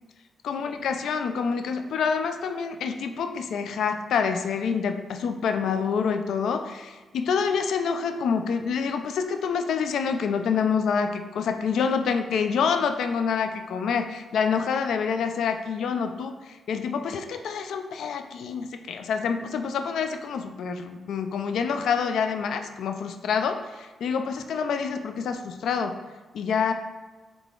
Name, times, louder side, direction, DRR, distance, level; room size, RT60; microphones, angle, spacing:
voice 1, 0.4-25.9 26.3-26.7, left 6 dB, 75° left, 7 dB, 0.4 m, -27 dB
3.7 x 3.4 x 3.7 m, 1.2 s
supercardioid pair, 65°, 0 cm